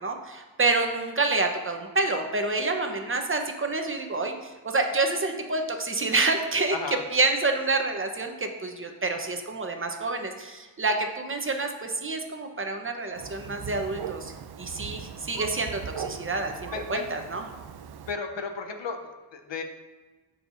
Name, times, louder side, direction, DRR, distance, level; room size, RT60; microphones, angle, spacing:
voice 1, 0.0-4.3 4.6-14.3 14.6-17.4, right 3 dB, 25° right, 4 dB, 1.1 m, -28 dB
voice 2, 6.7-7.0 16.7-17.1 18.1-19.0 19.3-19.6, left 4 dB, 70° left, 5 dB, 1.0 m, -33 dB
Thunder, 13.1-18.1, right 7 dB, 55° right, 0.6 m, -39 dB
14.0 x 4.7 x 2.7 m, 1.3 s
cardioid pair, 70°, 46 cm